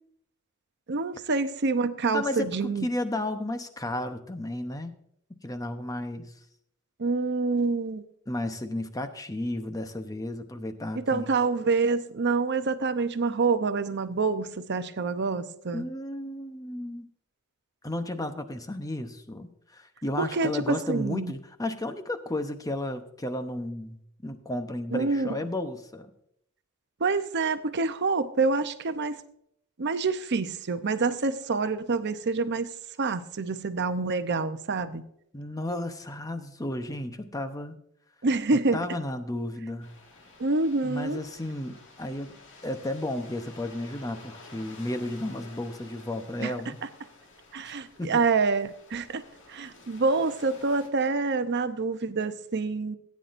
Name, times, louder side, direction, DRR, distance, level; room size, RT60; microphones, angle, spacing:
voice 1, 0.9-2.9 7.0-8.0 11.0-15.8 20.2-21.3 24.9-25.3 27.0-29.2 29.8-32.7 33.0-35.0 38.2-38.8 40.4-41.2 46.4-46.5 47.5-49.2 49.5-53.0, right 4 dB, 50° right, 10 dB, 0.7 m, -27 dB
voice 2, 2.1-5.0 5.4-6.3 8.3-11.3 15.7-17.1 17.8-26.1 35.3-37.7 38.7-39.9 40.8-42.3 42.6-46.8 47.7-47.8 48.0-48.2, left 1 dB, 15° left, 8 dB, 0.8 m, -33 dB
sound 1, 39.8-50.9, left 3 dB, 60° left, 2.0 m, -51 dB
17.5 x 9.5 x 2.6 m, 0.72 s
head